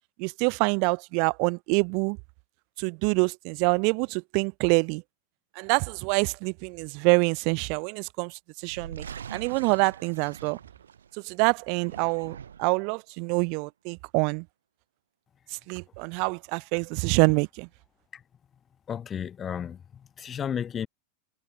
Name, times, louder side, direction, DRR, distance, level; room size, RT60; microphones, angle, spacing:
voice 1, 0.2-2.2 2.8-5.0 5.6-10.6 11.2-14.4 15.5-17.7, right 38 dB, 45° right, 0.8 m, -26 dB
sound 1, 8.6-11.2 11.7-12.8, right 8 dB, 65° right, 1.5 m, -43 dB
voice 2, 18.9-19.8 20.2-20.9, left 8 dB, 25° left, 1.5 m, -32 dB
figure-of-eight pair, 90°, 0 cm